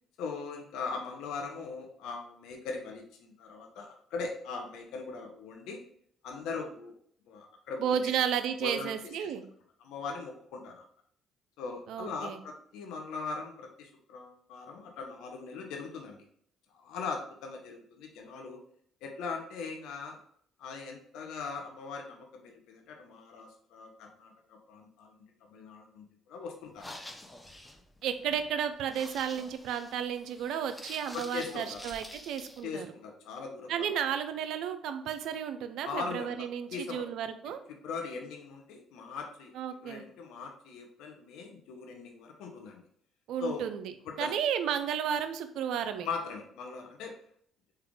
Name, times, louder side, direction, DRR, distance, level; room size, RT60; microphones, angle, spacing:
voice 1, 0.2-5.8 6.2-6.9 7.3-8.1 8.6-8.9 9.2-9.3 9.8-10.8 11.6-16.2 16.7-18.6 19.0-20.2 20.6-25.2 25.5-26.9 31.1-31.8 32.6-33.9 35.9-36.3 36.7-37.0 37.8-39.5 39.8-42.8 43.4-43.7 44.1-44.3 46.0-47.1, left 4 dB, 75° left, 2 dB, 0.6 m, -40 dB
voice 2, 7.8-9.4 11.9-12.4 28.0-32.9 33.7-37.6 39.5-40.0 43.3-43.9 44.2-46.1, right 8 dB, 75° right, 9 dB, 0.3 m, -33 dB
sound 1, 26.7-32.6, left 1 dB, 15° left, 0.5 m, -48 dB
3.2 x 2.3 x 3.5 m, 0.63 s
supercardioid pair, 60°, 0 cm